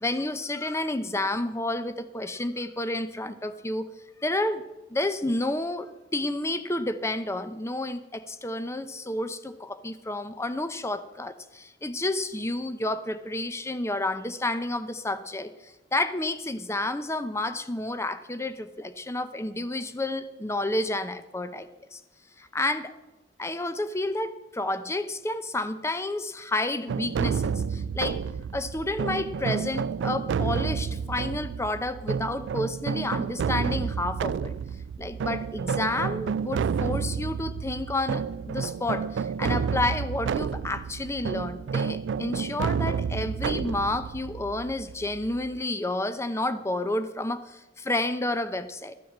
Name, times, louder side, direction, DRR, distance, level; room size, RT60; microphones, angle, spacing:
voice 1, 0.0-3.9 4.2-4.6 4.9-15.5 15.9-22.0 22.5-22.9 23.4-28.2 28.5-34.5 35.0-48.9, left 2 dB, 15° left, 11 dB, 0.7 m, -30 dB
sound 1, 26.9-45.6, right 6 dB, 80° right, 0.3 m, -30 dB
13.5 x 7.7 x 7.3 m, 1.0 s
head